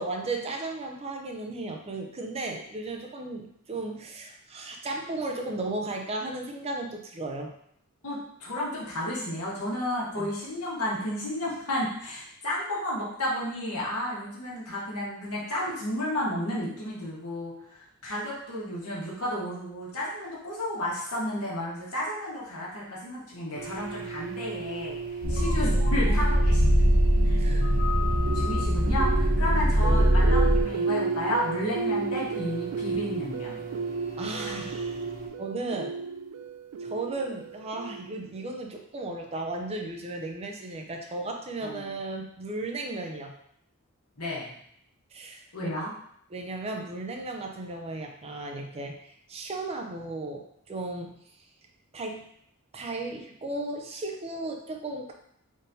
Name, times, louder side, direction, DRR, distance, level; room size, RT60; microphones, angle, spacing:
voice 1, 0.0-7.5 10.2-10.3 26.1-26.2 27.4-27.9 34.2-35.0 35.4-36.0 36.8-43.3 45.1-45.5 46.3-48.9 49.3-51.2 51.9-52.3 52.7-55.1, right 2 dB, 30° right, 2 dB, 0.5 m, -35 dB
voice 2, 8.0-24.9 25.3-26.9 27.2-27.4 28.0-33.6 34.2-34.6 41.6-41.9 44.2-44.5 45.5-45.9, left 1 dB, 80° left, -5 dB, 1.4 m, -32 dB
sound 1, 23.5-35.3, right 5 dB, 65° right, 0.8 m, -38 dB
Spaceship Engine - noise + heavy beep, 25.2-30.6, equal, 50° left, 0.7 m, -22 dB
sound 2, 28.3-38.3, right 5 dB, 85° right, 0.3 m, -33 dB
4.1 x 3.6 x 2.7 m, 0.69 s
head